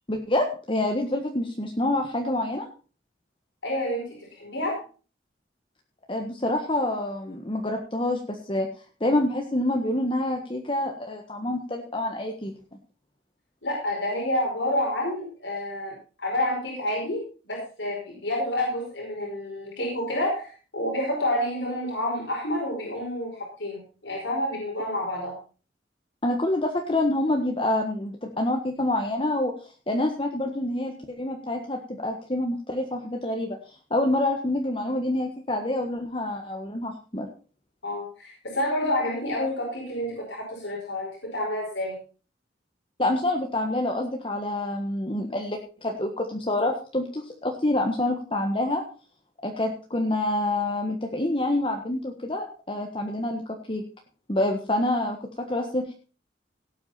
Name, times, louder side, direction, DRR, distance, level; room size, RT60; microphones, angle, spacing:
voice 1, 0.1-2.7 6.1-8.7 9.0-12.5 26.2-37.3 43.0-48.8 49.4-53.8 54.3-55.9, left 1 dB, 30° left, 2 dB, 1.5 m, -27 dB
voice 2, 3.6-4.8 13.6-25.4 37.8-42.0, left 1 dB, 85° left, -2 dB, 5.2 m, -29 dB
18.0 x 8.6 x 4.3 m, 0.37 s
head